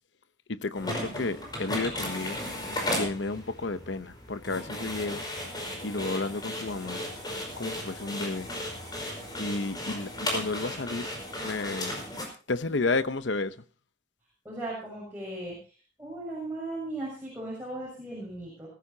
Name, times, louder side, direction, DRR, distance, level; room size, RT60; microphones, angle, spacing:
voice 1, 0.5-2.4 3.0-5.2 5.8-7.0 7.6-8.5 9.4-11.1 11.4-12.1 12.5-13.5, left 3 dB, 70° left, 0.8 m, -32 dB
sound 1, 0.7-12.2, left 1 dB, 20° left, 5.3 m, -35 dB
voice 2, 14.4-18.7, right 2 dB, 10° right, 6.8 m, -37 dB
20.5 x 15.0 x 2.8 m
head